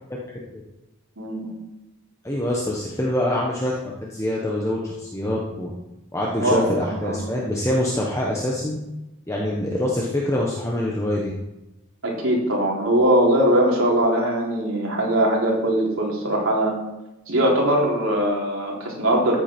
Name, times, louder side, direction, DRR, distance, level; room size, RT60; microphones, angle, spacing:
voice 1, 0.3-0.6 2.2-3.7 4.0-5.7 6.1-8.8 9.3-11.3, left 1 dB, 15° left, -3 dB, 1.3 m, -25 dB
voice 2, 1.2-1.6 6.4-7.3 12.0-16.8 17.3-19.4, right 1 dB, 65° right, -3 dB, 3.7 m, -21 dB
14.0 x 8.4 x 4.6 m, 0.96 s
head